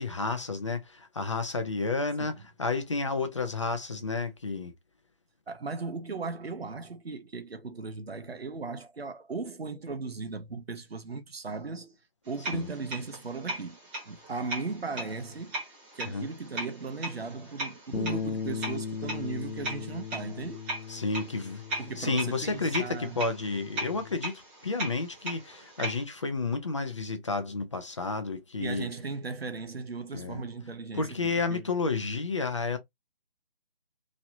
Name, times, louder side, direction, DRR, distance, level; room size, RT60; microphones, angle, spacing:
voice 1, 0.0-4.7 12.5-12.7 16.1-16.3 20.9-28.9 30.1-30.4 30.9-32.8, left 3 dB, 30° left, 0.5 m, -31 dB
voice 2, 5.5-12.0 12.3-13.8 14.1-20.7 21.8-23.2 28.6-31.6, right 4 dB, 80° right, 0.8 m, -37 dB
sound 1, 12.3-26.0, right 1 dB, 15° right, 1.1 m, -39 dB
Bass guitar, 17.9-24.2, left 6 dB, 70° left, 0.8 m, -38 dB
3.0 x 2.8 x 2.6 m
figure-of-eight pair, 150°, 30 cm